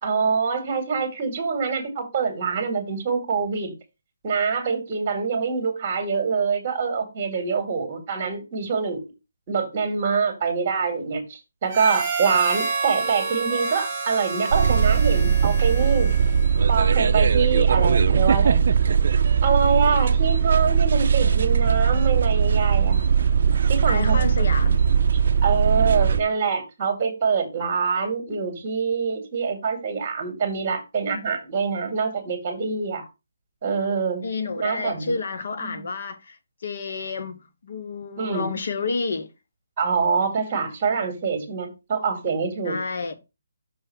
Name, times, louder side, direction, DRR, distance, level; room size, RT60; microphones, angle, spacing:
voice 1, 0.0-3.7 4.2-9.0 9.5-16.1 16.7-18.7 19.4-23.0 23.7-24.1 25.4-33.0 33.6-34.2 34.6-35.1 35.6-35.8 38.2-38.5 39.8-42.8, right 5 dB, 30° right, 2.1 m, -25 dB
Harmonica, 11.7-16.7, right 4 dB, 10° right, 2.1 m, -29 dB
sound 1, 14.5-26.2, right 7 dB, 55° right, 0.5 m, -19 dB
voice 2, 23.9-24.8 34.2-39.3 42.6-43.1, left 4 dB, 55° left, 0.9 m, -30 dB
6.3 x 3.3 x 5.9 m
hypercardioid pair, 165°, 0 cm